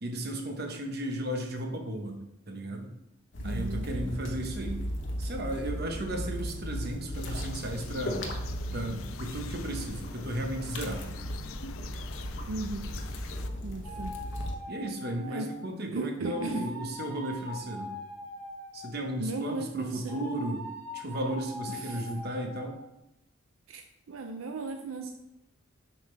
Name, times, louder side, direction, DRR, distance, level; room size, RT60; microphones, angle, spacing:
voice 1, 0.0-2.2 2.5-2.9 3.4-4.8 5.2-8.3 8.7-11.2 14.7-17.9 18.7-20.6 20.9-22.8, right 1 dB, 50° right, 3 dB, 1.0 m, -35 dB
sound 1, 3.3-14.5, equal, 60° left, 0.9 m, -36 dB
voice 2, 3.4-3.9 12.5-12.9 13.6-14.1 15.3-15.5 15.9-16.7 19.2-20.3 21.7-22.0 23.7-23.8 24.1-25.1, right 3 dB, 80° right, 5 dB, 0.5 m, -36 dB
sound 2, 7.1-13.5, left 8 dB, 80° left, 0.4 m, -47 dB
sound 3, 13.8-15.6 16.2-19.1 20.1-22.7, left 1 dB, 10° left, 1.8 m, -42 dB
7.2 x 5.4 x 3.3 m, 0.90 s
head